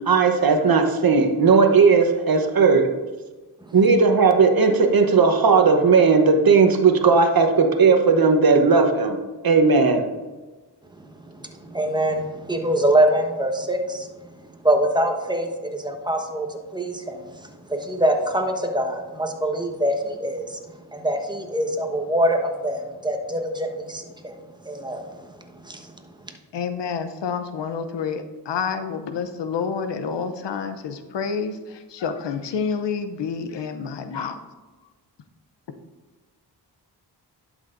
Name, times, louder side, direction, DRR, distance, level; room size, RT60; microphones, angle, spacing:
voice 1, 0.1-2.9 3.7-9.2 9.4-10.1, right 4 dB, 55° right, 5 dB, 1.0 m, -16 dB
voice 2, 11.4-14.1 14.6-20.6 20.9-24.3 24.6-25.0 25.6-25.9, right 1 dB, 10° right, 3 dB, 1.2 m, -24 dB
voice 3, 26.5-34.4, left 6 dB, 85° left, 9 dB, 0.7 m, -28 dB
11.0 x 6.3 x 2.6 m, 1.2 s
cardioid pair, 55°, 42 cm